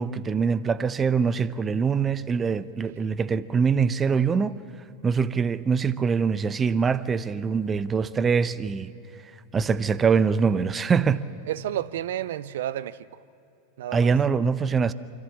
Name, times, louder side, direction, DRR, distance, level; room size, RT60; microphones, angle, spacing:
voice 1, 0.0-4.6 5.0-8.9 9.5-11.2 13.9-14.9, right 5 dB, 25° right, 0.7 m, -23 dB
voice 2, 11.5-13.2 13.8-14.1, right 12 dB, 70° right, 0.4 m, -31 dB
25.5 x 14.5 x 8.5 m
hypercardioid pair, 90°, 0 cm